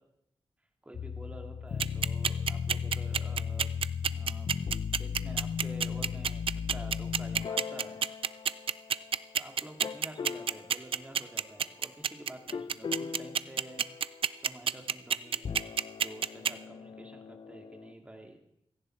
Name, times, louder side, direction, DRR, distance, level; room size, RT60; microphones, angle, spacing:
voice 1, 0.8-3.7 4.1-8.0 9.3-13.8 14.4-15.6 16.0-18.4, right 1 dB, 15° right, 3 dB, 2.1 m, -49 dB
sound 1, 0.9-9.3 9.8-10.7 12.5-14.2 15.3-17.9, left 6 dB, 55° left, 0.5 m, -37 dB
sound 2, 1.8-16.5, right 7 dB, 70° right, 0.4 m, -28 dB
17.0 x 14.5 x 4.5 m, 0.77 s
wide cardioid pair, 150°, 10 cm